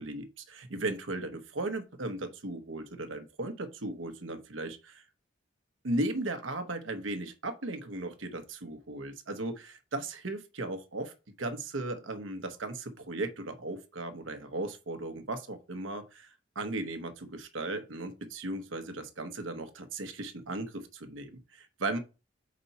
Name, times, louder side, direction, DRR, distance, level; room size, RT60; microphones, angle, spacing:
voice 1, 0.0-5.0 5.8-22.0, right 2 dB, 90° right, 1.0 m, -36 dB
5.2 x 4.2 x 5.6 m
head